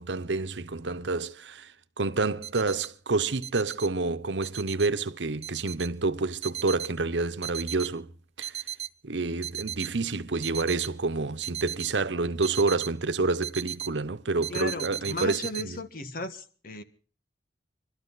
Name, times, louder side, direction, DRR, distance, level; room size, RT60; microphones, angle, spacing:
voice 1, 0.0-8.1 8.4-8.6 9.0-15.8, right 3 dB, 85° right, 1.0 m, -28 dB
sound 1, 2.4-2.9 3.4-3.9 4.4-4.9 5.4-5.9 6.4-6.9 7.4-7.9 8.4-8.9 9.4-9.9 10.4-10.9 11.4-11.9 12.4-12.9 13.4-13.9 14.4-15.6, right 11 dB, 40° right, 0.7 m, -36 dB
voice 2, 14.5-16.8, left 2 dB, 50° left, 1.7 m, -36 dB
25.0 x 13.0 x 4.0 m
head